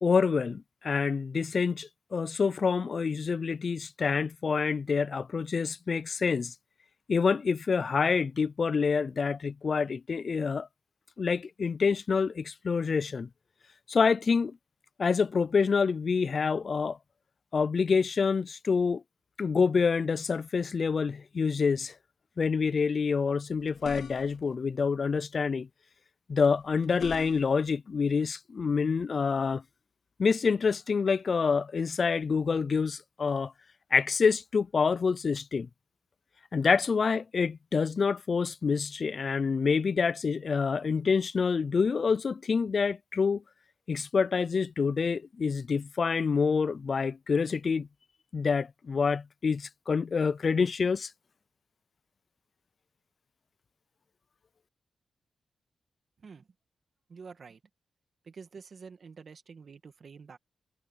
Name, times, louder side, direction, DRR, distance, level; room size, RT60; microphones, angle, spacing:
voice 1, 0.0-6.5 7.1-10.7 11.2-13.3 13.9-14.5 15.0-17.0 17.5-19.0 19.4-21.9 22.4-25.7 26.3-29.6 30.2-33.5 33.9-35.7 36.5-43.4 43.9-47.9 48.3-51.1, left 5 dB, 50° left, 0.5 m, -27 dB
sound 1, 23.6-24.5 26.5-27.7, left 7 dB, 85° left, 5.0 m, -43 dB
voice 2, 57.1-57.6 58.2-60.4, right 5 dB, 55° right, 2.1 m, -48 dB
wide cardioid pair, 100°, 0 cm